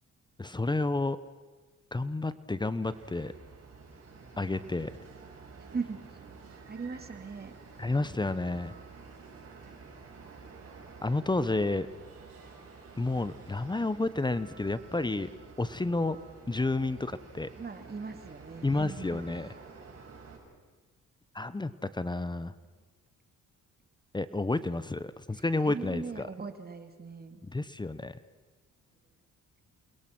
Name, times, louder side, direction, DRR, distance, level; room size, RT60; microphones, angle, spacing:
voice 1, 0.4-1.2 1.9-3.3 4.4-4.9 7.8-8.7 11.0-11.9 13.0-15.3 15.6-16.2 16.5-17.5 18.6-19.5 21.3-22.5 24.1-26.3 27.4-28.2, left 2 dB, 15° left, 15 dB, 0.9 m, -30 dB
sound 1, 2.8-20.4, right 4 dB, 50° right, 7.3 m, -50 dB
voice 2, 5.6-6.0 6.7-7.5 17.6-19.4 25.3-27.4, right 5 dB, 30° right, 7 dB, 2.7 m, -39 dB
29.0 x 21.0 x 6.1 m, 1.3 s
cardioid pair, 90°, 30 cm